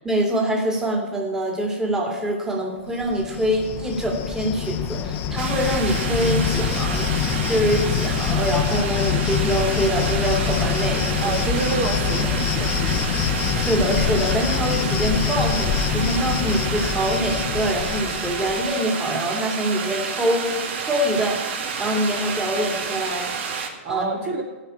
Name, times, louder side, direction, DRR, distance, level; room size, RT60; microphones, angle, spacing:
voice 1, 0.0-7.1 7.5-11.2 13.5-23.3 23.9-24.1, equal, 10° right, 0 dB, 2.4 m, -24 dB
Cricket, 3.0-18.7, left 7 dB, 30° left, 1.0 m, -25 dB
sound 1, 5.4-23.7, right 6 dB, 55° right, 2.0 m, -30 dB
voice 2, 11.2-13.2 23.8-24.4, right 4 dB, 40° right, 2 dB, 1.9 m, -28 dB
14.5 x 5.7 x 8.8 m, 1.2 s
hypercardioid pair, 140°, 7 cm